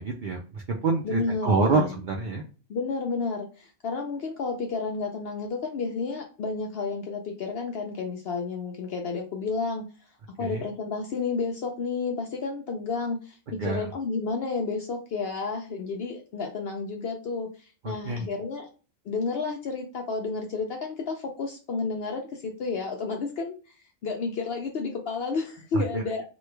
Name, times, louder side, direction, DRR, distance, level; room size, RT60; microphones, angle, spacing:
voice 1, 0.0-2.4 10.4-10.6 13.5-13.9 17.8-18.3 25.7-26.0, right 4 dB, 75° right, 1 dB, 0.4 m, -27 dB
voice 2, 1.0-2.0 2.7-9.8 10.4-18.7 19.1-23.6 24.0-26.2, left 4 dB, 65° left, 2 dB, 0.6 m, -31 dB
3.1 x 2.3 x 3.2 m, 0.35 s
omnidirectional pair, 1.4 m